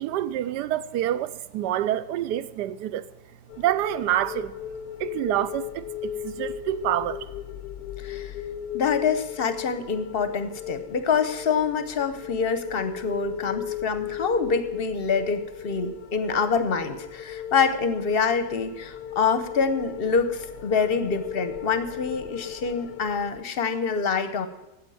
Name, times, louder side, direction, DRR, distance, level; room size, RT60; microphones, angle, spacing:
voice 1, 0.0-3.1 3.6-4.5 5.0-7.3, right 12 dB, 80° right, 1.2 m, -27 dB
sound 1, 3.5-23.4, left 10 dB, 90° left, 1.2 m, -37 dB
voice 2, 8.0-8.3 8.7-24.5, left 5 dB, 50° left, 0.7 m, -26 dB
8.7 x 8.0 x 9.2 m
omnidirectional pair, 1.8 m